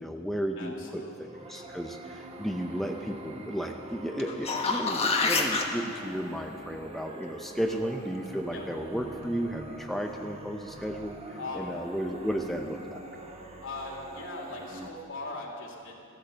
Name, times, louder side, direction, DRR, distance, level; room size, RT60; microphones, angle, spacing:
voice 1, 0.0-13.0, equal, ahead, 2 dB, 0.6 m, -34 dB
voice 2, 0.6-1.3 8.5-8.7 11.4-11.7 13.6-16.0, left 2 dB, 65° left, -2 dB, 3.1 m, -39 dB
sound 1, 1.2-14.9, right 2 dB, 30° right, 1.2 m, -44 dB
sound 2, 4.2-5.6 10.4-10.5, left 4 dB, 30° left, 1.3 m, -27 dB
15.0 x 13.5 x 6.8 m, 2.5 s
head